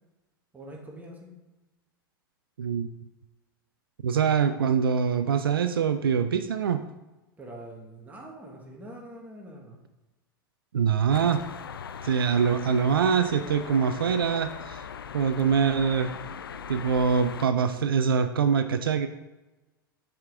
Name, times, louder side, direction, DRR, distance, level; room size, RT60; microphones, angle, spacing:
voice 1, 0.5-1.3 7.4-9.8, right 1 dB, 15° right, -1 dB, 1.7 m, -44 dB
voice 2, 2.6-2.9 4.0-6.8 10.7-11.4 12.0-14.8 15.1-16.1 16.7-19.1, right 6 dB, 75° right, 10 dB, 0.4 m, -24 dB
sound 1, 11.1-17.4, left 7 dB, 80° left, 0.4 m, -40 dB
7.2 x 5.0 x 3.6 m, 1.1 s
figure-of-eight pair, 95°, 12 cm